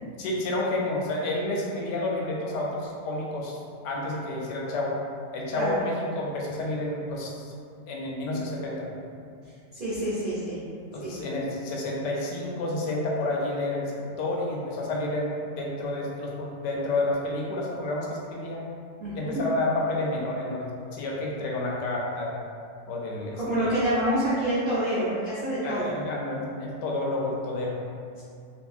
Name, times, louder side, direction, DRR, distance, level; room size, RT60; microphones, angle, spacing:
voice 1, 0.2-4.9 5.3-7.5 7.9-8.9 10.9-13.9 14.2-18.6 19.1-22.4 22.9-23.8 25.6-27.8, left 2 dB, 85° left, -3 dB, 1.2 m, -30 dB
voice 2, 9.7-10.6 11.0-11.2 19.0-19.4 23.4-25.9, right 1 dB, 80° right, -12 dB, 0.4 m, -27 dB
2.7 x 2.6 x 2.4 m, 2.4 s
omnidirectional pair, 1.8 m